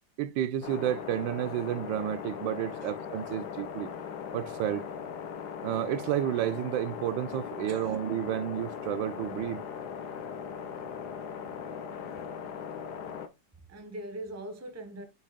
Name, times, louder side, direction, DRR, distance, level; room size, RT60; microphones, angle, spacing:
voice 1, 0.2-3.9 4.3-4.9 5.6-9.6, right 11 dB, 85° right, 1.3 m, -31 dB
sound 1, 0.6-13.3, left 7 dB, 65° left, 1.3 m, -39 dB
voice 2, 7.7-8.0 13.7-15.1, right 1 dB, 15° right, 0.7 m, -41 dB
6.4 x 3.0 x 5.0 m
omnidirectional pair, 2.0 m